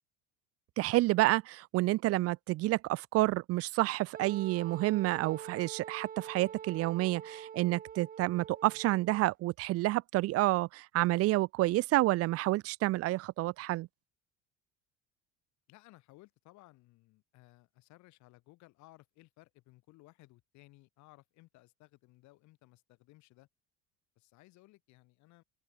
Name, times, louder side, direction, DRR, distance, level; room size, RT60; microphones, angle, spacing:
voice 1, 0.8-13.9, right 18 dB, 50° right, 0.7 m, -29 dB
Wind instrument woodwind instrument, 4.1-9.3, right 8 dB, 30° right, 1.7 m, -46 dB
voice 2, 15.7-23.5 24.2-25.4, left 20 dB, 65° left, 7.8 m, -60 dB
open air
cardioid pair, 145°, 31 cm